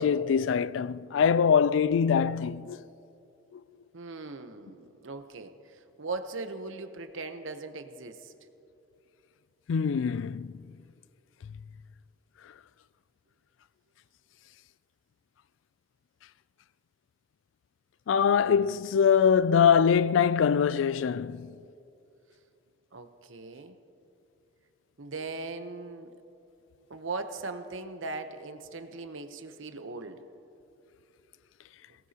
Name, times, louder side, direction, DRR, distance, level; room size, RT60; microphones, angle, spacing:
voice 1, 0.0-2.8 9.7-10.5 18.1-21.5, left 7 dB, 80° left, 0.3 m, -23 dB
voice 2, 3.9-8.3 22.9-23.8 25.0-26.1 26.9-30.2, right 3 dB, 85° right, 0.9 m, -39 dB
22.0 x 18.0 x 2.9 m
head